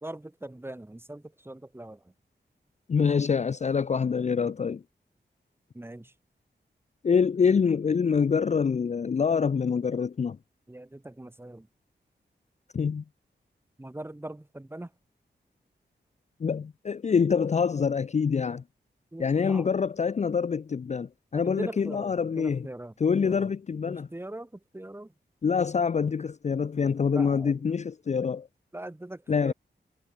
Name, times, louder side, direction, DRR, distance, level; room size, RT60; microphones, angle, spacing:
voice 1, 0.0-2.0 5.7-6.1 10.7-11.7 13.8-14.9 19.1-19.7 21.3-22.9 23.2-23.5 23.9-25.1 27.1-27.6 28.7-29.5, right 1 dB, 10° right, 2.7 m, -41 dB
voice 2, 2.9-4.8 7.0-10.4 12.7-13.0 16.4-18.6 19.2-22.7 23.0-24.1 25.4-28.5 29.3-29.5, left 6 dB, 40° left, 0.5 m, -25 dB
wide cardioid pair, 145°, 18 cm